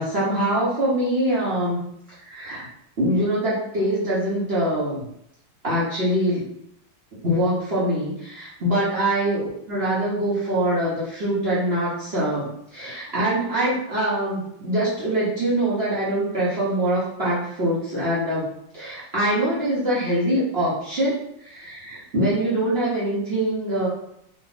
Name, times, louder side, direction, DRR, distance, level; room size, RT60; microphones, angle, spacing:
voice 1, 0.0-1.9 2.1-2.7 3.0-5.0 5.6-6.4 7.2-18.5 18.7-23.9, right 1 dB, 40° right, -8 dB, 1.0 m, -24 dB
3.8 x 2.6 x 3.9 m, 0.75 s
omnidirectional pair, 2.0 m